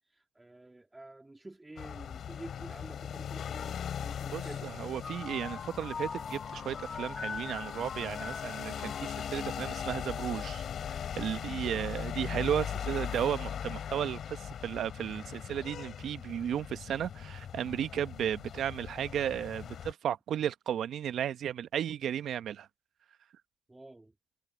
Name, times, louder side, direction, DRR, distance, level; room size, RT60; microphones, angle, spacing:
voice 1, 0.0-4.7 11.6-11.8 23.7-24.1, right 2 dB, 15° right, 3.1 m, -49 dB
sound 1, 1.8-19.9, left 8 dB, 55° left, 5.4 m, -39 dB
voice 2, 4.3-10.6 11.2-22.7, right 9 dB, 60° right, 1.1 m, -34 dB
sound 2, 5.0-10.1, left 5 dB, 35° left, 1.9 m, -42 dB
supercardioid pair, 85°, 0 cm